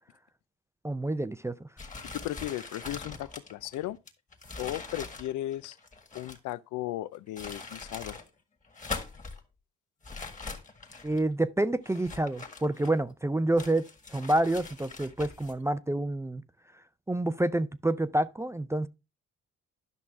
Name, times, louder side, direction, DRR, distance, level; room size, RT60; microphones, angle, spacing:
voice 1, 0.8-1.7 11.0-13.8 14.1-16.4 17.1-18.9, right 1 dB, 10° right, 0.4 m, -28 dB
sound 1, 1.8-6.5 7.1-8.3 8.6-9.4 10.0-11.2 11.8-13.1 13.6-15.5, left 4 dB, 25° left, 1.7 m, -42 dB
voice 2, 2.1-4.0 4.6-5.8 6.1-8.2, left 14 dB, 85° left, 0.5 m, -36 dB
11.0 x 6.1 x 3.4 m
cardioid pair, 95°, 30 cm